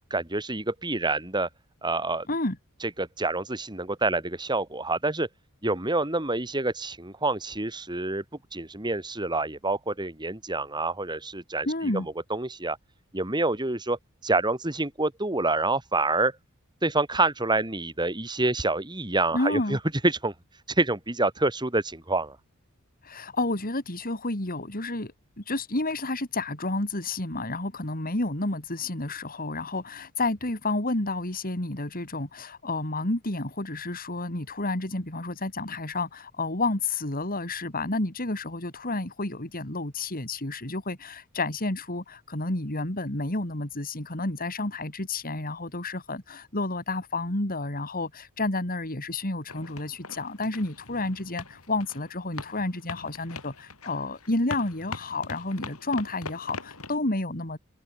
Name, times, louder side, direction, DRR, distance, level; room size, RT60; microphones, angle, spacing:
voice 1, 0.1-1.5 1.8-2.3 3.0-5.3 5.6-8.2 8.5-12.0 12.3-12.8 13.1-16.3 16.8-19.8 20.0-20.3 20.7-22.4, right 2 dB, 20° right, 3.1 m, -27 dB
voice 2, 11.6-12.1 19.3-19.8 23.0-25.1 25.4-57.6, left 2 dB, 40° left, 3.4 m, -30 dB
sound 1, 49.5-57.0, left 3 dB, 75° left, 5.7 m, -42 dB
head